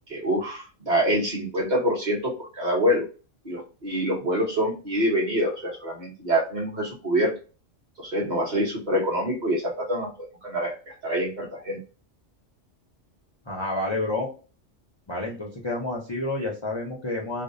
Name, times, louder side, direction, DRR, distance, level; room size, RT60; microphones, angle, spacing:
voice 1, 0.1-3.1 3.4-7.3 8.0-10.1 10.4-10.7 11.0-11.8, equal, 40° right, -2 dB, 0.8 m, -25 dB
voice 2, 13.5-14.3 15.1-17.4, left 2 dB, 50° left, -1 dB, 0.3 m, -29 dB
2.6 x 2.0 x 2.5 m, 0.35 s
omnidirectional pair, 1.3 m